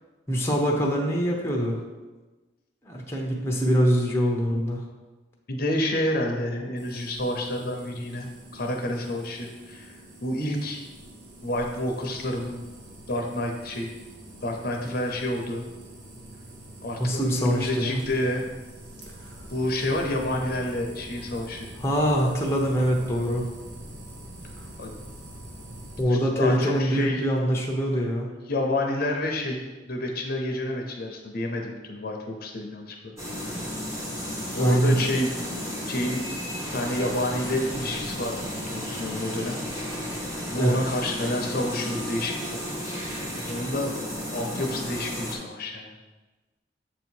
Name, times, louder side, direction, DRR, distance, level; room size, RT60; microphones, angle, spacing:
voice 1, 0.3-1.8 2.8-4.8 17.0-18.0 21.8-23.5 26.0-28.3 34.5-35.0 40.6-40.8, equal, 15° left, -1 dB, 0.7 m, -24 dB
voice 2, 5.5-9.9 10.2-10.8 11.4-12.6 13.1-13.9 14.4-15.6 16.8-18.4 19.5-21.7 24.8-24.9 26.0-27.2 28.5-33.5 34.5-35.3 35.9-36.3 36.7-39.6 40.5-42.6 43.0-43.9 44.3-45.9, left 1 dB, 55° left, 2 dB, 0.7 m, -29 dB
sound 1, 6.8-26.0, right 1 dB, 70° right, 1.0 m, -44 dB
sound 2, 33.2-45.4, equal, 15° right, 1.1 m, -33 dB
7.3 x 2.8 x 4.5 m, 1.2 s
head